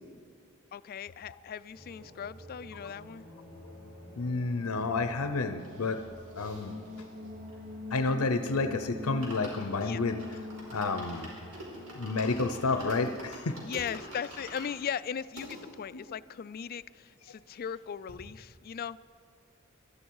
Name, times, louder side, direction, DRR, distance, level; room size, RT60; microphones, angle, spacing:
voice 1, 0.7-3.2 9.8-10.0 13.6-19.0, left 7 dB, 45° left, 17 dB, 0.3 m, -38 dB
sound 1, 1.7-13.7, left 2 dB, 40° right, 3.4 m, -45 dB
voice 2, 4.2-6.0 6.4-6.8 7.9-10.2 10.7-11.3 11.9-13.6 15.9-16.0, left 3 dB, 90° left, 8 dB, 0.7 m, -30 dB
sound 2, 5.6-8.4 8.7-8.8 9.0-15.6 16.2-16.3 16.4-16.5 16.8-17.8 18.1-18.2, right 1 dB, 85° right, 4.9 m, -47 dB
21.5 x 13.0 x 4.7 m, 2.1 s
head